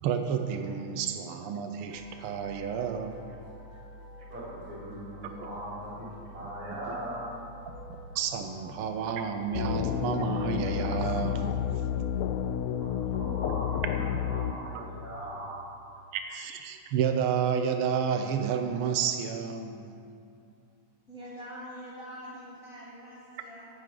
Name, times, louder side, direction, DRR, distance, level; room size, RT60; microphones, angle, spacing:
voice 1, 0.0-3.2 6.0-6.1 7.7-11.6 14.7-14.8 16.1-20.0, right 7 dB, 90° right, 6 dB, 1.2 m, -31 dB
sound 1, 1.9-14.3, equal, 75° right, 3.6 m, -48 dB
voice 2, 4.2-7.3 12.8-15.6, right 1 dB, 50° right, -9 dB, 4.8 m, -40 dB
sound 2, 9.5-14.5, left 10 dB, 80° left, 1.5 m, -30 dB
voice 3, 21.1-23.7, equal, 35° left, -7 dB, 1.5 m, -44 dB
15.5 x 11.5 x 3.8 m, 2.5 s
omnidirectional pair, 3.3 m